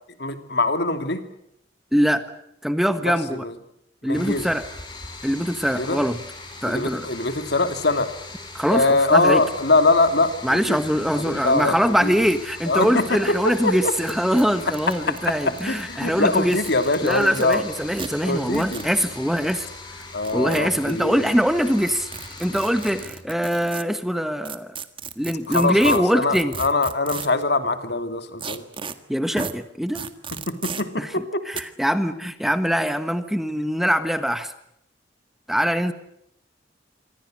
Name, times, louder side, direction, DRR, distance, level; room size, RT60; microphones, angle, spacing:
voice 1, 0.2-1.2 3.0-3.5 4.0-4.5 5.8-6.0 6.6-8.1 8.7-10.8 11.1-12.1 12.7-13.9 15.1-15.2 15.5-17.6 18.2-18.9 20.1-21.3 25.5-28.6 30.5-31.4, left 2 dB, 60° left, 8 dB, 2.9 m, -23 dB
voice 2, 1.9-2.2 2.6-3.4 4.0-4.7 5.2-6.2 6.6-7.1 8.5-9.4 10.4-16.6 17.0-19.7 20.3-22.1 22.4-24.8 25.2-26.5 29.1-30.0 31.0-31.1 31.5-34.5 35.5-35.9, equal, ahead, 10 dB, 1.4 m, -23 dB
sound 1, 4.1-23.0, left 2 dB, 25° left, 6.7 m, -40 dB
sound 2, 13.3-13.4 13.6-13.7 14.0-14.1 14.4-15.8 16.4-17.6 18.0-18.1 18.5-18.9 20.0-20.9 22.1-23.8 24.4-27.4 28.4-28.9 29.4-29.5 29.9-30.8 31.5-31.6, right 5 dB, 30° right, 1.7 m, -34 dB
27.5 x 25.0 x 6.5 m, 0.75 s
head